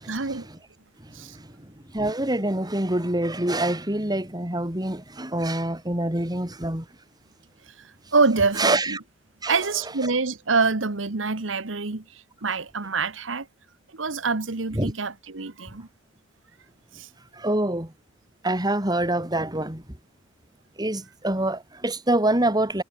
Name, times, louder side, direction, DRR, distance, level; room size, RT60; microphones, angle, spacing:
voice 1, 0.0-0.5 1.1-1.4 7.8-9.0 9.5-13.5 13.9-15.9 16.9-17.1, right 4 dB, 85° right, 1.4 m, -26 dB
voice 2, 1.9-6.8 8.6-9.0 9.4-9.5 14.8-14.9 17.4-17.9 18.4-19.8 20.8-22.8, right 1 dB, 20° right, 3.7 m, -25 dB
head